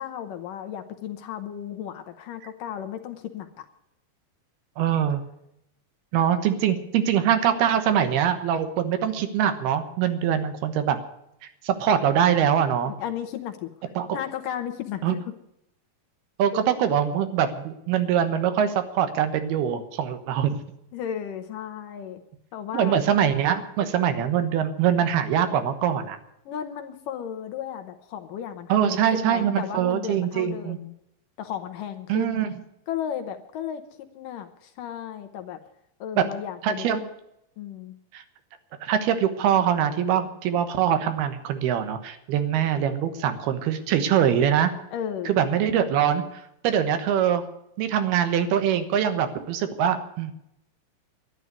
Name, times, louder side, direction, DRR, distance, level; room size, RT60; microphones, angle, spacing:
voice 1, 0.0-3.7 12.9-13.7 14.1-15.2 16.5-16.6 20.9-22.2 22.5-23.0 26.5-30.9 31.4-32.5 32.9-33.8 34.1-35.6 36.0-36.9 37.6-38.0 44.9-45.4, left 9 dB, 70° left, 8 dB, 2.4 m, -34 dB
voice 2, 4.8-5.2 6.1-11.0 11.6-12.9 14.0-14.1 15.0-15.2 16.4-20.6 22.7-26.2 28.7-30.8 32.1-32.5 36.2-36.3 36.6-37.1 38.1-38.2 38.8-44.7 45.3-46.2 46.6-47.4 47.8-50.3, right 9 dB, 85° right, 9 dB, 3.2 m, -23 dB
11.5 x 11.0 x 9.3 m, 0.80 s
omnidirectional pair, 4.4 m